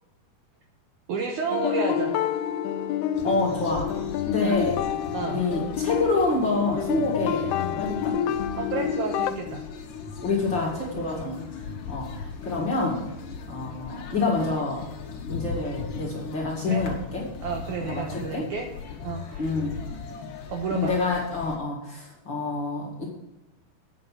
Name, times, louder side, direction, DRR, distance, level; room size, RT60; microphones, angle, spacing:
voice 1, 1.1-2.2 4.4-4.6 5.1-5.4 8.6-9.6 16.7-16.9 17.4-18.7 19.0-19.5 20.5-21.0, right 5 dB, 70° right, 3 dB, 2.0 m, -31 dB
sound 1, 1.5-9.3, left 9 dB, 85° left, 2.6 m, -28 dB
sound 2, 3.1-21.6, left 5 dB, 65° left, 2.7 m, -38 dB
voice 2, 3.2-4.0 4.3-4.8 5.3-8.2 10.2-13.0 13.5-14.8 15.3-17.3 17.8-18.5 19.4-19.7 20.7-23.1, left 3 dB, 35° left, -3 dB, 2.4 m, -27 dB
9.5 x 7.2 x 7.5 m, 0.98 s
omnidirectional pair, 4.4 m